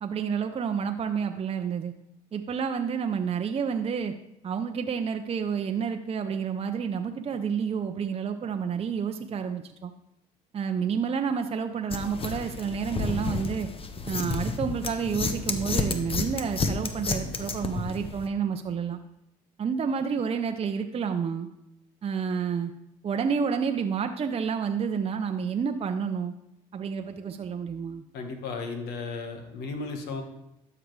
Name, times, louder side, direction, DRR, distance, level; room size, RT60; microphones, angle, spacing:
voice 1, 0.0-1.9 2.3-4.1 4.4-9.9 10.5-13.7 14.1-19.0 19.6-21.5 22.0-22.7 23.0-26.3 26.7-28.0, right 6 dB, 35° right, 6 dB, 0.6 m, -29 dB
sound 1, 11.9-18.3, left 4 dB, 35° left, 0.8 m, -31 dB
voice 2, 28.1-30.2, left 4 dB, 75° left, 5 dB, 1.4 m, -35 dB
12.5 x 4.9 x 3.2 m, 0.84 s
supercardioid pair, 65°, 16 cm